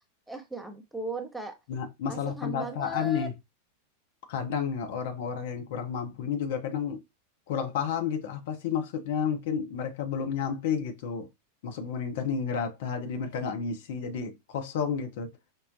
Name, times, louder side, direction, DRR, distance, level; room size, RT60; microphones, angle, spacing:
voice 1, 0.3-1.6 2.1-3.3, right 3 dB, ahead, 0.7 m, -37 dB
voice 2, 1.7-3.3 4.3-7.0 7.5-11.3 11.6-15.3, left 7 dB, 55° left, 0.7 m, -31 dB
5.2 x 2.0 x 2.6 m
figure-of-eight pair, 90°, 0 cm